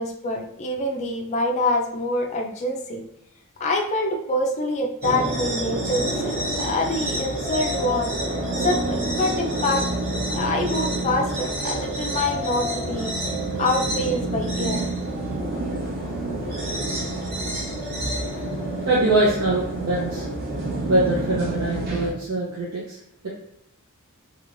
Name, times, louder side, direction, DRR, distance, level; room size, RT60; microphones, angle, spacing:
voice 1, 0.0-3.0 3.6-8.1 8.6-9.9 10.3-13.1 13.6-14.9, left 2 dB, 30° left, 2 dB, 0.3 m, -25 dB
sound 1, 5.0-22.1, right 1 dB, 45° right, 0.9 m, -28 dB
voice 2, 18.9-20.3 20.9-23.0, right 2 dB, 85° right, -6 dB, 0.7 m, -23 dB
2.9 x 2.9 x 2.5 m, 0.79 s
head